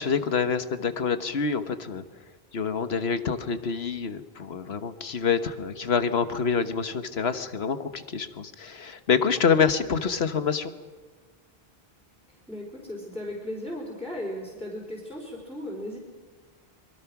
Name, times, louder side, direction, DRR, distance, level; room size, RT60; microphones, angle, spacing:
voice 1, 0.0-2.0 2.5-10.7, left 6 dB, 85° left, 10 dB, 1.5 m, -26 dB
voice 2, 12.3-16.0, left 1 dB, ahead, -4 dB, 4.6 m, -36 dB
25.5 x 23.5 x 6.0 m, 1.4 s
omnidirectional pair, 1.0 m